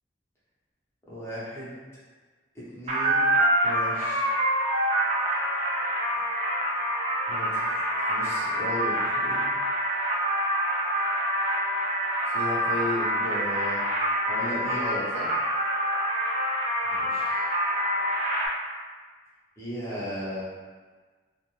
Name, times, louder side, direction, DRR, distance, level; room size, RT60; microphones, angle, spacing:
voice 1, 1.1-1.7 2.7-3.3 3.6-4.3 6.2-6.5 7.3-7.7 8.0-9.5 12.2-13.8 14.3-15.3 16.9-17.5 19.6-20.4, left 1 dB, 15° left, -10 dB, 0.7 m, -35 dB
sound 1, 2.9-18.5, right 1 dB, 35° right, 0.4 m, -26 dB
2.4 x 2.1 x 3.0 m, 1.4 s
head